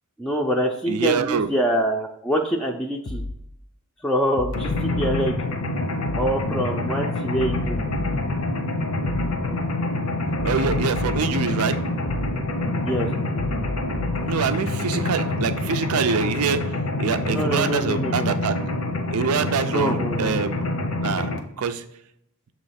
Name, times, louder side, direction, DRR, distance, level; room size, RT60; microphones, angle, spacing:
voice 1, 0.2-3.2 4.0-5.4 6.1-7.8 12.8-13.1 17.3-18.3 19.7-20.4, equal, 5° left, -1 dB, 0.4 m, -25 dB
voice 2, 0.9-1.5 10.4-11.8 14.3-16.6 17.0-18.6 19.1-20.5 21.0-21.3 21.6-21.8, right 6 dB, 90° right, 10 dB, 0.5 m, -25 dB
sound 1, 3.1-3.4 4.4-5.2 6.1-6.4 7.4-8.3 9.1-9.4 10.4-11.3 12.1-12.4 13.4-14.3, left 2 dB, 50° left, 0.6 m, -31 dB
Mechanisms, 4.5-21.4, left 2 dB, 85° left, 0.9 m, -26 dB
7.3 x 3.0 x 5.7 m, 0.75 s
head